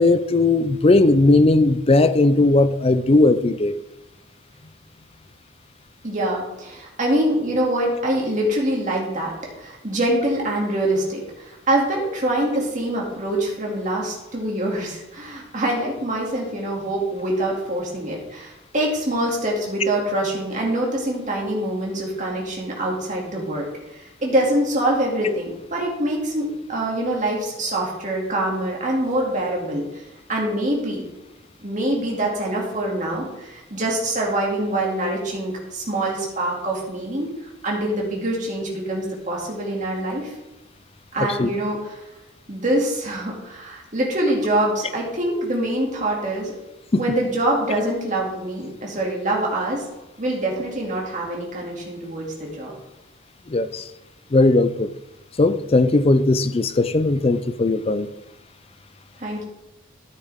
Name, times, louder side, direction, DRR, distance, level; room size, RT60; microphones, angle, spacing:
voice 1, 0.0-3.8 41.4-41.5 46.9-47.0 53.5-53.8 54.3-54.9 55.4-58.1, left 2 dB, 30° left, 0.5 m, -17 dB
voice 2, 6.0-23.7 23.9-30.0 30.3-31.0 31.6-37.3 37.6-40.3 41.1-42.0 42.5-46.5 47.0-49.8 50.2-52.7 59.2-59.4, right 1 dB, 40° right, 2.5 m, -24 dB
13.5 x 7.2 x 3.6 m
head